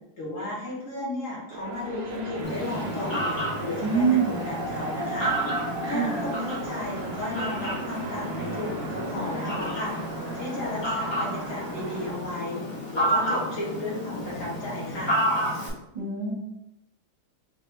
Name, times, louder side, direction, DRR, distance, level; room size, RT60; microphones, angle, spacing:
voice 1, 0.2-3.3 3.6-5.4 5.9-12.6 12.9-15.2, left 2 dB, 45° left, -6 dB, 1.7 m, -34 dB
sound 1, 1.5-12.1, right 2 dB, 70° right, 1.4 m, -37 dB
Fowl, 2.4-15.7, equal, 25° left, 0.6 m, -31 dB
voice 2, 3.8-4.3 5.8-6.2 15.9-16.3, right 6 dB, 20° right, -6 dB, 1.2 m, -24 dB
4.1 x 2.8 x 3.2 m, 0.84 s
omnidirectional pair, 2.2 m